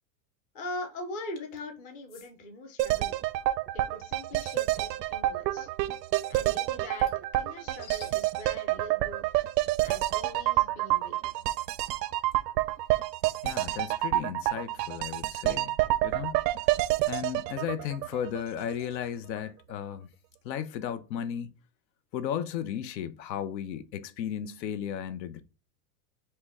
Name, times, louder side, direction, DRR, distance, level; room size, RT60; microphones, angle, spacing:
voice 1, 0.5-3.2 3.7-5.7 6.3-9.3 9.8-11.2, left 1 dB, 20° left, 0.4 m, -42 dB
sound 1, 1.4-1.6 2.1-2.3 4.8-5.1 6.9-8.2, left 9 dB, 60° left, 1.2 m, -51 dB
sound 2, 2.8-18.7 19.0-19.1, right 16 dB, 80° right, 0.5 m, -28 dB
voice 2, 13.4-15.8 16.0-16.5 17.1-20.1 20.4-21.5 22.1-25.4, left 9 dB, 90° left, 0.7 m, -35 dB
5.7 x 2.2 x 3.4 m
supercardioid pair, 155°, 49 cm